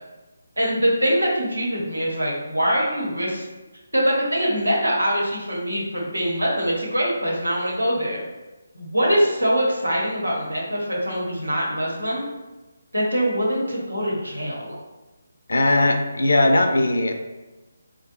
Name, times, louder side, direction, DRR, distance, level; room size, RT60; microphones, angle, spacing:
voice 1, 0.6-3.4 3.9-8.2 8.7-12.2 12.9-14.7, equal, 90° right, -3 dB, 1.0 m, -23 dB
voice 2, 15.5-17.1, left 2 dB, 65° left, 5 dB, 0.4 m, -19 dB
3.3 x 2.2 x 2.9 m, 1.1 s
figure-of-eight pair, 150°, 0 cm